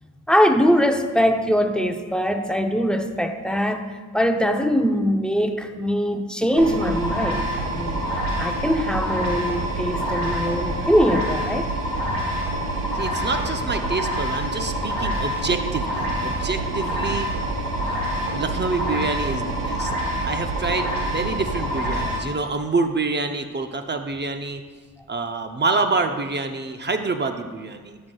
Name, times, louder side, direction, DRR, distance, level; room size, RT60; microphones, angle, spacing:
voice 1, 0.3-3.9 4.1-8.0 8.4-11.7 20.0-20.1, equal, ahead, 5 dB, 0.7 m, -22 dB
sound 1, 6.6-22.2, right 1 dB, 85° right, 1.4 m, -26 dB
voice 2, 12.9-17.3 17.9-18.0 18.3-19.9 20.2-24.6 25.1-28.0, right 3 dB, 30° right, 7 dB, 0.7 m, -27 dB
12.0 x 6.4 x 2.4 m, 1.4 s
supercardioid pair, 55°, 34 cm